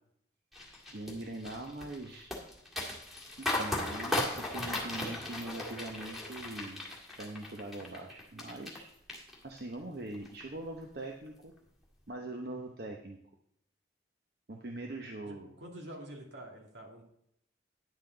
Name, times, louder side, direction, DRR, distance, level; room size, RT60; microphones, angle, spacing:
sound 1, 0.5-8.8 9.1-9.7 10.1-10.4, left 1 dB, ahead, 1.8 m, -37 dB
voice 1, 0.9-2.3 3.4-6.9 7.2-8.9 9.4-11.5 12.1-13.2 14.5-15.5, right 2 dB, 55° right, 2 dB, 0.8 m, -42 dB
voice 2, 15.3-17.0, right 1 dB, 75° right, 0 dB, 2.3 m, -47 dB
10.0 x 8.1 x 3.9 m, 0.74 s
head